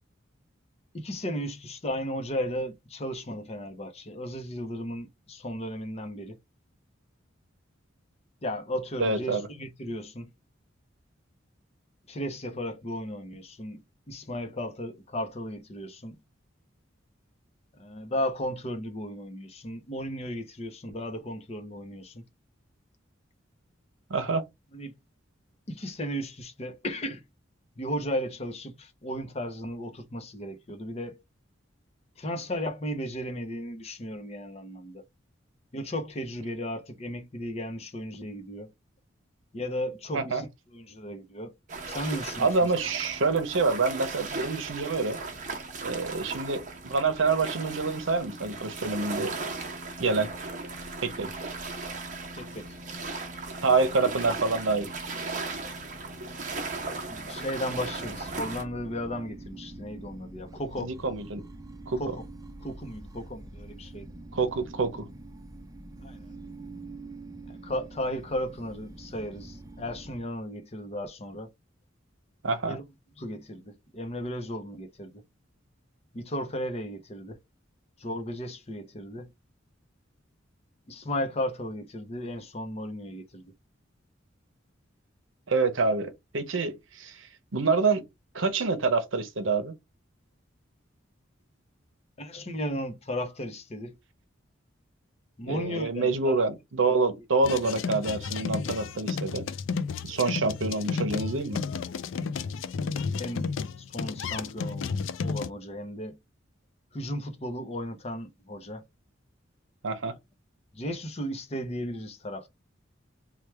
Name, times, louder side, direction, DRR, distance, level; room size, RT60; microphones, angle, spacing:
voice 1, 0.9-6.3 8.4-10.3 12.1-13.8 14.1-16.2 17.8-22.2 24.7-24.9 25.7-27.2 27.8-31.2 32.2-35.0 35.7-38.7 39.5-40.5 40.7-41.5 41.9-42.5 52.4-52.8 57.1-60.9 62.0-62.2 62.6-64.1 66.0-66.3 67.5-71.5 72.7-72.8 73.2-75.2 76.1-77.4 78.0-79.3 80.9-83.4 92.2-94.0 95.4-96.3 102.3-102.5 103.1-103.5 103.8-106.2 106.9-108.8 110.7-112.5, equal, 35° left, 0.7 m, -35 dB
voice 2, 9.0-9.5 24.1-24.4 40.1-40.4 42.4-45.2 45.8-49.4 50.0-50.3 51.0-51.3 53.6-54.9 60.8-61.5 61.9-62.0 64.3-65.1 72.4-72.8 85.5-87.3 87.5-88.0 88.3-89.7 95.5-99.5 100.0-101.6 109.8-110.1, right 4 dB, 80° right, 0.8 m, -27 dB
sound 1, 41.7-58.6, right 3 dB, 40° right, 0.9 m, -37 dB
sound 2, 57.7-70.2, right 2 dB, 20° right, 0.5 m, -45 dB
sound 3, 97.4-105.5, left 5 dB, 75° left, 0.4 m, -32 dB
3.3 x 2.3 x 4.4 m
head